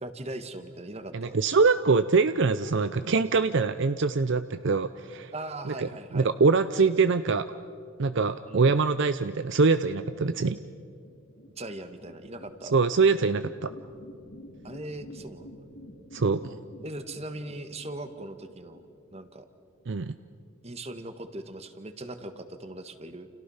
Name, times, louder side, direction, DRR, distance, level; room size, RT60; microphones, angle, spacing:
voice 1, 0.0-1.4 5.3-6.3 8.5-8.8 11.6-12.7 14.6-15.5 16.8-18.8 19.1-19.5 20.6-23.3, right 1 dB, 30° right, 9 dB, 1.5 m, -39 dB
voice 2, 1.1-5.3 5.7-7.5 8.0-10.6 12.7-13.7 16.1-16.4 19.9-20.1, right 4 dB, 60° right, 11 dB, 0.6 m, -24 dB
sound 1, 10.8-19.6, equal, 70° left, 3.8 m, -50 dB
30.0 x 29.5 x 5.6 m, 2.4 s
head